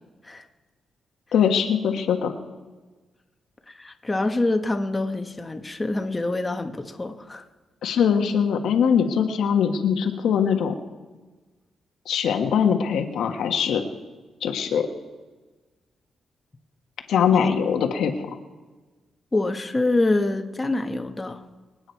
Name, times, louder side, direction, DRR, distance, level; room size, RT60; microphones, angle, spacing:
voice 1, 1.3-2.3 7.8-10.8 12.0-13.8 14.4-14.9 17.1-18.3, left 7 dB, 85° left, 5 dB, 1.5 m, -22 dB
voice 2, 3.7-7.4 17.3-17.5 19.3-21.4, left 2 dB, 20° left, 5 dB, 1.2 m, -25 dB
25.0 x 9.0 x 4.6 m, 1.3 s
cardioid pair, 100°, 0 cm